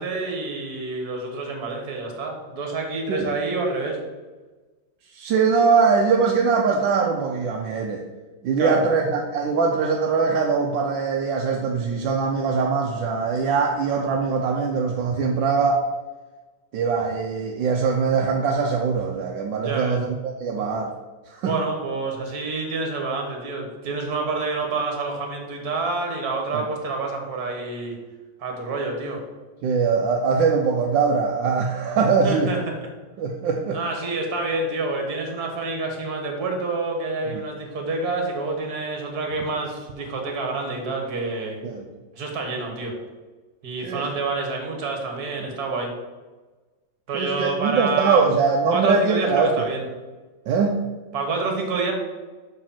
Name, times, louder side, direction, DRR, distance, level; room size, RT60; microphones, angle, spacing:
voice 1, 0.0-4.0 8.6-8.8 19.6-20.0 21.4-28.0 28.4-29.2 32.2-32.8 33.7-41.6 42.2-43.0 43.6-45.9 47.1-48.3 48.7-49.9 51.1-51.9, right 3 dB, 50° right, 2 dB, 1.9 m, -28 dB
voice 2, 5.1-8.0 8.4-15.8 16.7-20.9 21.3-21.5 29.6-32.5 33.2-33.8 37.4-37.5 41.6-41.9 43.8-44.1 47.1-49.7 50.5-50.8, right 5 dB, 75° right, 1 dB, 1.3 m, -22 dB
6.5 x 4.9 x 5.7 m, 1.3 s
omnidirectional pair, 2.2 m